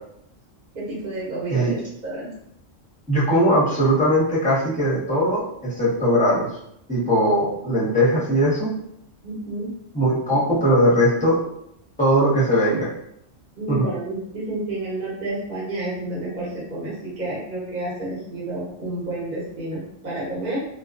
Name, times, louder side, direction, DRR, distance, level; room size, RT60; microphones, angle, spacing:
voice 1, 0.7-1.8 2.0-2.3 9.2-9.7 13.6-20.6, right 2 dB, 45° right, -7 dB, 0.9 m, -30 dB
voice 2, 3.1-6.5 6.9-8.7 9.9-11.4 12.0-12.9 13.7-13.8, equal, 5° left, -9 dB, 0.8 m, -19 dB
2.3 x 2.2 x 2.4 m, 0.75 s
omnidirectional pair, 1.3 m